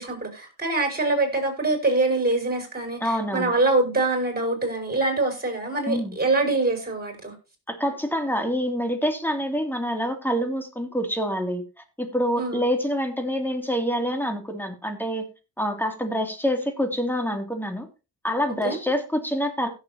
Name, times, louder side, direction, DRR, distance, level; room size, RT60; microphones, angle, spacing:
voice 1, 0.0-7.3 12.4-12.7 18.6-18.8, right 2 dB, 25° right, 5.8 m, -24 dB
voice 2, 3.0-3.5 5.9-6.1 7.7-11.6 12.0-15.3 15.6-17.9 18.2-19.7, equal, 5° left, 2.8 m, -26 dB
16.5 x 7.5 x 2.9 m
cardioid pair, 65°, 38 cm